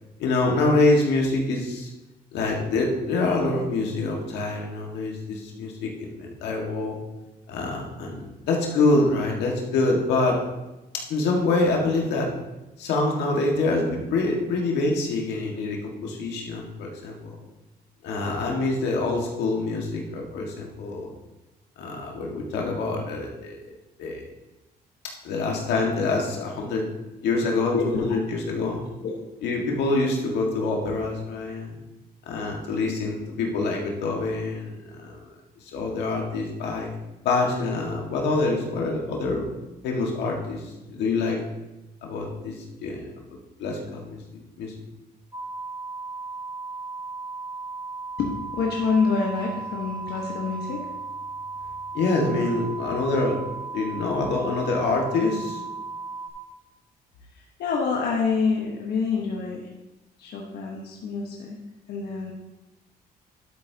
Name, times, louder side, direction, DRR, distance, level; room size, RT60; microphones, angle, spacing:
voice 1, 0.2-1.9 2.3-7.0 7.5-10.4 11.1-12.3 12.8-17.4 18.0-21.1 21.8-23.6 24.0-24.2 25.2-26.9 27.2-28.8 29.4-31.7 32.3-35.2 35.7-36.9 37.2-39.5 39.8-41.4 42.0-44.2 44.6-44.7 51.9-53.4 53.7-55.6, left 3 dB, 90° left, 0 dB, 1.8 m, -25 dB
voice 2, 27.7-28.1 28.6-28.7 29.0-29.1 48.2-50.9 57.6-59.7 60.2-61.6 61.9-62.3, left 5 dB, 70° left, -2 dB, 1.3 m, -26 dB
sound 1, 45.3-56.3, right 3 dB, 20° right, 1.6 m, -36 dB
12.0 x 8.0 x 2.9 m, 1.0 s
cardioid pair, 100°, 17 cm